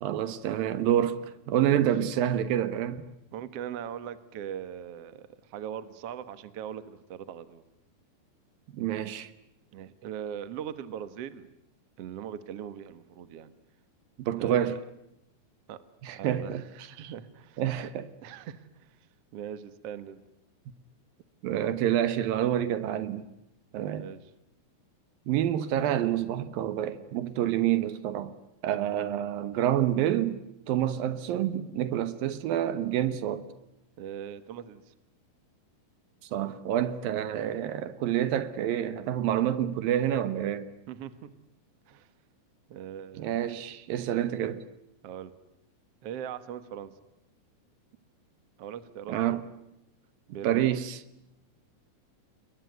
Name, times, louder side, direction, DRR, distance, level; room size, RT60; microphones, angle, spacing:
voice 1, 0.0-3.1 8.7-9.3 14.2-14.8 16.0-16.6 17.0-17.1 17.6-18.1 21.4-23.2 23.7-24.1 25.3-28.3 28.6-30.4 30.7-33.5 36.3-40.7 43.2-44.6 49.1-49.4 50.4-51.0, right 11 dB, 75° right, 2.9 m, -28 dB
voice 2, 3.3-7.6 9.7-11.5 12.0-13.5 14.4-14.8 15.7-15.8 16.1-17.6 18.2-19.0 19.3-20.2 24.0-24.2 34.0-34.9 40.9-41.3 41.9-42.1 42.7-43.5 44.1-44.3 45.0-45.4 46.0-46.9 48.6-49.4 50.3-50.8, right 9 dB, 55° right, 1.9 m, -40 dB
28.5 x 21.5 x 9.4 m
omnidirectional pair, 4.2 m